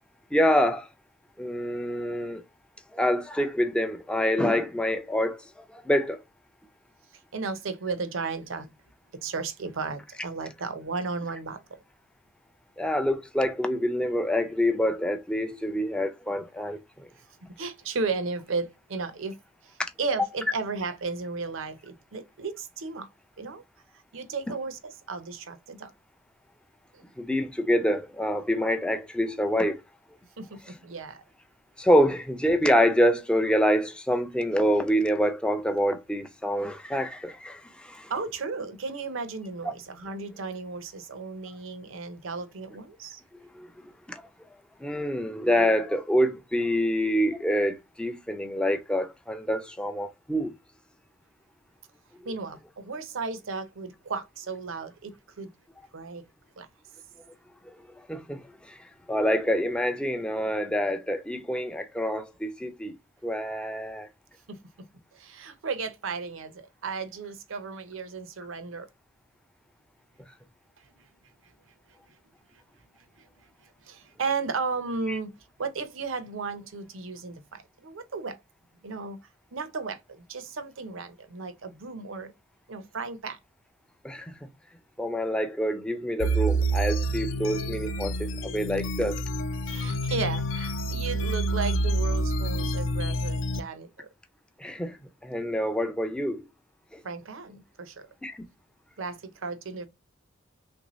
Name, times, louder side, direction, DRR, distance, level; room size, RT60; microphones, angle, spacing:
voice 1, 0.3-0.9 1.4-2.4 2.9-6.2 12.8-17.1 27.2-29.8 31.8-38.1 43.5-43.7 44.1-44.2 44.8-50.5 58.1-58.8 59.1-62.9 63.2-64.1 75.1-75.2 84.0-84.5 85.0-89.2 94.6-96.4 96.9-97.0 98.2-98.4, equal, 5° left, 0.4 m, -26 dB
voice 2, 7.3-8.7 9.1-11.6 17.6-19.4 20.0-23.1 23.4-23.6 24.1-25.9 30.4-31.2 38.1-43.2 52.3-55.5 55.9-56.2 56.6-56.7 64.5-64.9 65.2-68.9 73.9-75.3 75.6-78.4 78.8-79.2 79.5-82.3 82.7-83.4 89.7-94.1 97.0-98.1 99.0-99.9, right 4 dB, 70° right, 0.6 m, -34 dB
sound 1, 86.2-93.6, right 1 dB, 70° left, 0.4 m, -28 dB
3.3 x 2.6 x 3.0 m
head